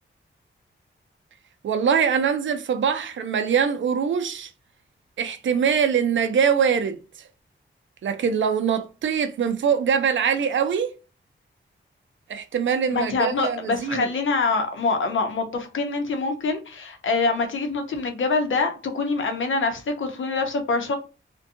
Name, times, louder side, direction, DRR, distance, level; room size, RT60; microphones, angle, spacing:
voice 1, 1.6-4.5 5.2-7.0 8.0-10.9 12.3-14.1, right 7 dB, 70° right, 0.4 m, -23 dB
voice 2, 12.9-21.0, left 3 dB, 75° left, 0.7 m, -25 dB
2.6 x 2.2 x 2.5 m
wide cardioid pair, 100°, 20 cm